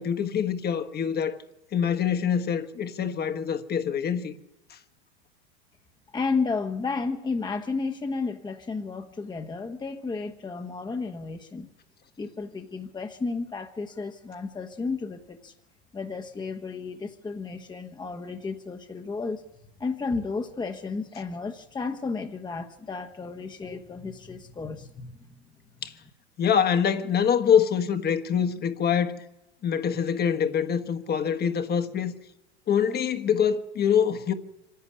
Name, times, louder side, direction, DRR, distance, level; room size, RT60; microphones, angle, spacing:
voice 1, 0.0-1.4 1.7-4.4 4.7-4.8 25.8-25.9 26.4-29.2 29.6-32.1 32.7-34.3, left 8 dB, 30° left, 1.5 m, -25 dB
voice 2, 6.1-11.7 12.2-15.5 15.9-19.4 19.8-25.1, left 4 dB, 15° left, 1.2 m, -32 dB
25.0 x 11.5 x 9.8 m
hypercardioid pair, 110°, 33 cm